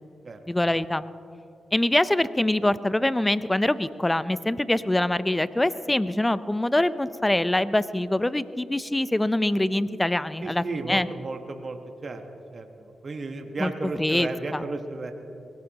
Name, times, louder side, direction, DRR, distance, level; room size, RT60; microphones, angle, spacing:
voice 1, 0.5-1.0 1.7-11.1 13.6-14.6, left 1 dB, 15° left, 15 dB, 0.6 m, -24 dB
voice 2, 10.4-12.2 12.5-15.1, right 3 dB, 50° right, 5 dB, 1.3 m, -34 dB
23.0 x 18.0 x 3.0 m, 2.6 s
supercardioid pair, 45°, 0 cm